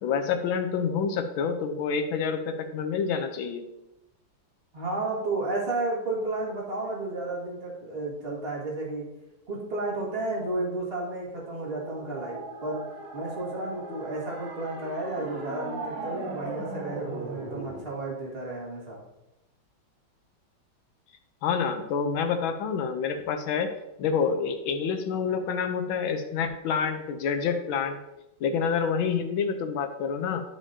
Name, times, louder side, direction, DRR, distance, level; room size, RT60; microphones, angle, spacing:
voice 1, 0.0-3.6 21.4-23.7 24.0-28.0 28.4-30.4, left 6 dB, 80° left, 7 dB, 1.5 m, -28 dB
voice 2, 4.7-9.1 9.5-12.9 13.1-19.0, right 2 dB, 30° right, -4 dB, 2.0 m, -32 dB
sound 1, 11.3-17.8, right 2 dB, 60° right, 1.8 m, -38 dB
11.5 x 5.0 x 2.8 m, 0.92 s
omnidirectional pair, 2.2 m